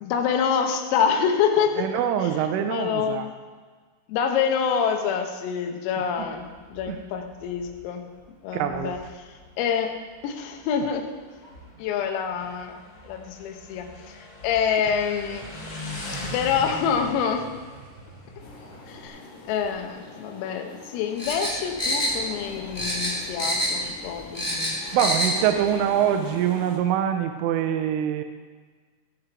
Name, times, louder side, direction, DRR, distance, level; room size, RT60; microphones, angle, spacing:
voice 1, 0.0-1.9 2.7-3.3 4.1-8.0 8.4-9.0 9.3-9.9 10.2-11.1 11.8-15.5 16.1-17.5 18.9-24.8, left 7 dB, 85° left, 5 dB, 3.7 m, -26 dB
voice 2, 1.8-3.3 6.9-7.0 8.5-8.9 24.9-28.2, right 10 dB, 85° right, 6 dB, 3.0 m, -24 dB
Motorcycle, 6.1-19.1, left 1 dB, 35° left, 3.3 m, -41 dB
sound 1, 18.4-26.8, left 3 dB, 60° left, 2.2 m, -43 dB
sound 2, 21.2-22.5 22.7-23.9 24.2-25.4 25.7-25.8, equal, 5° left, 2.4 m, -26 dB
16.5 x 7.6 x 4.6 m, 1.5 s
omnidirectional pair, 6.0 m